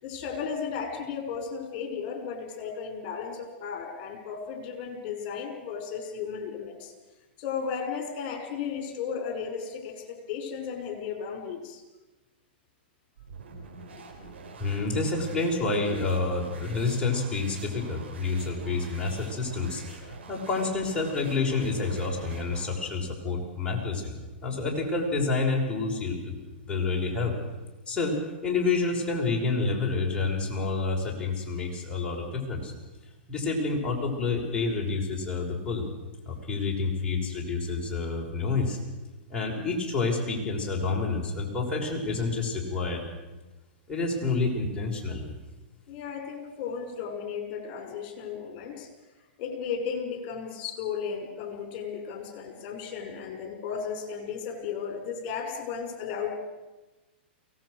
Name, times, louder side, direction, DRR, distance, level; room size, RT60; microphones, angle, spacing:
voice 1, 0.0-6.9 7.4-11.8 45.9-48.9 49.4-56.3, left 6 dB, 45° left, 5 dB, 5.5 m, -35 dB
sound 1, 13.2-22.8, right 4 dB, 85° right, 5.0 m, -46 dB
voice 2, 14.6-26.4 26.7-27.3 27.9-32.7 33.3-35.9 36.3-38.8 39.3-43.0 43.9-45.3, left 3 dB, 15° left, -2 dB, 5.6 m, -28 dB
23.5 x 18.0 x 6.5 m, 1.1 s
hypercardioid pair, 125°, 6 cm